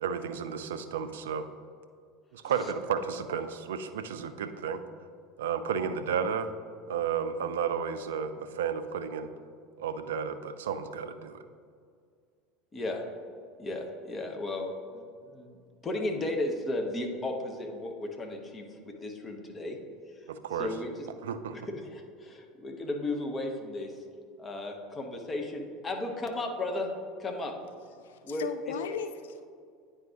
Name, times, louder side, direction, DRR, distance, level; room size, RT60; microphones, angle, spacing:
voice 1, 0.0-1.5 2.3-4.8 5.4-6.5 6.9-9.3 9.8-11.4 20.3-20.8 21.2-21.6, right 7 dB, 70° right, 10 dB, 0.4 m, -32 dB
voice 2, 12.7-13.0 13.6-19.8 20.6-20.9 21.7-23.9 24.4-26.9 27.2-27.5 28.2-28.4, left 2 dB, 25° left, 3 dB, 0.9 m, -35 dB
voice 3, 28.0-29.5, left 7 dB, 70° left, 10 dB, 0.3 m, -37 dB
9.3 x 4.8 x 2.9 m, 2.2 s
figure-of-eight pair, 75°, 0 cm